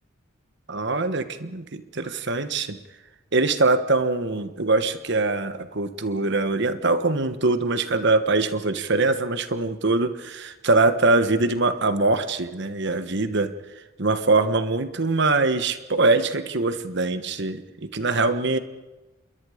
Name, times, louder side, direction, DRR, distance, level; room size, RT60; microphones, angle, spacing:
voice 1, 0.7-2.8 3.3-13.5 14.0-18.6, right 3 dB, 55° right, 10 dB, 1.3 m, -23 dB
27.5 x 22.0 x 5.1 m, 1.1 s
head